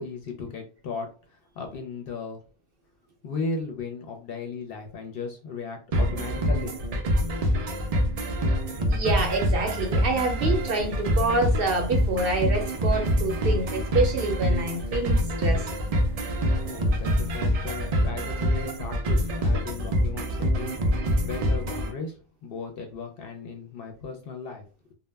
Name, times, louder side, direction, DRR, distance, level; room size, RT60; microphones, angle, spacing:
voice 1, 0.0-2.4 3.2-6.8 16.6-20.8 21.2-24.9, left 4 dB, 60° left, 3 dB, 0.7 m, -36 dB
sound 1, 5.9-21.9, equal, 80° right, 0.3 m, -25 dB
voice 2, 8.9-15.6, right 2 dB, 60° right, 3 dB, 0.7 m, -27 dB
sound 2, 9.4-17.8, equal, 5° left, 0.7 m, -47 dB
2.1 x 2.1 x 3.2 m, 0.36 s
omnidirectional pair, 1.2 m